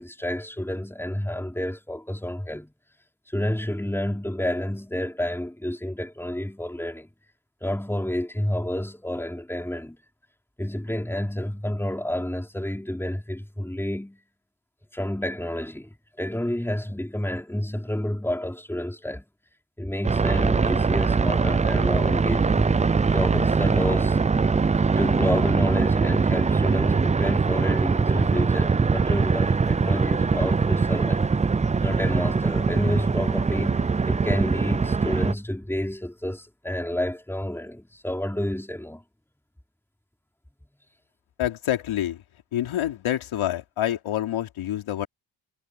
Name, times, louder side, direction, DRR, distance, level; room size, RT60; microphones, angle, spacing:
voice 1, 0.0-2.7 3.3-7.1 7.6-10.0 10.6-14.2 14.9-19.3 19.8-24.2 25.0-31.3 31.8-39.0, left 1 dB, 5° left, 5.2 m, -29 dB
sound 1, 20.0-35.3, right 4 dB, 15° right, 0.5 m, -22 dB
voice 2, 41.4-42.2 42.5-45.1, left 12 dB, 90° left, 3.8 m, -27 dB
cardioid pair, 80°, 47 cm